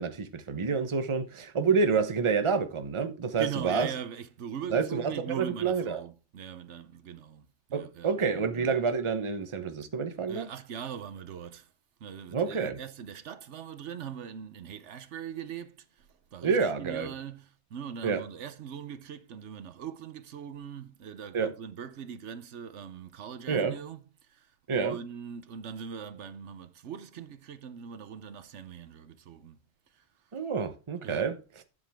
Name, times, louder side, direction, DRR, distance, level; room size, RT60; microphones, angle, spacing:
voice 1, 0.0-3.9 4.7-6.0 7.7-10.5 12.3-12.8 16.4-17.1 18.0-18.2 21.3-21.5 23.5-23.8 24.7-25.0 30.3-31.4, right 5 dB, 30° right, 0.8 m, -28 dB
voice 2, 3.4-8.2 10.3-11.7 12.0-29.6 29.9-30.0 31.0-31.3, right 8 dB, 80° right, 1.1 m, -41 dB
11.0 x 7.5 x 3.5 m
omnidirectional pair, 1.2 m